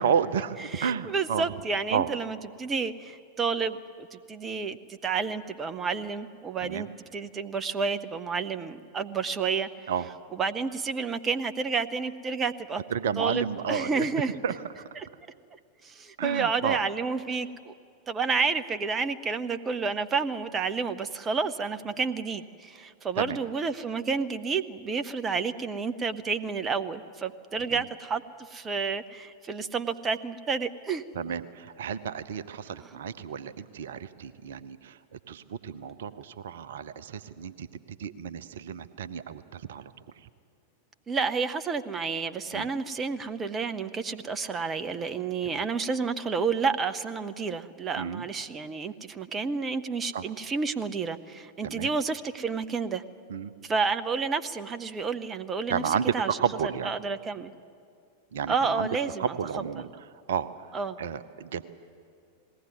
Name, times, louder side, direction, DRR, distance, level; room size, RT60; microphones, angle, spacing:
voice 1, 0.0-1.4 1.9-2.1 6.6-6.9 9.9-10.0 12.9-14.1 14.4-14.5 16.2-16.8 23.2-23.4 27.7-27.8 31.1-35.0 35.3-37.7 38.0-39.9 42.5-42.7 45.4-45.6 48.0-48.3 50.1-50.2 51.6-51.9 53.3-53.5 55.7-56.1 56.4-56.9 58.3-58.9 59.2-59.9 60.3-60.7 61.0-61.6, right 7 dB, 60° right, 13 dB, 0.7 m, -31 dB
voice 2, 0.6-9.9 10.3-12.8 13.2-14.3 15.0-15.1 15.8-17.7 18.1-31.0 32.7-32.9 41.1-53.0 53.6-56.3 56.6-57.5 58.5-59.3 59.8-59.9 60.7-61.0, right 5 dB, 20° right, 11 dB, 0.8 m, -30 dB
20.0 x 17.0 x 9.5 m, 2.3 s
figure-of-eight pair, 90°, 0 cm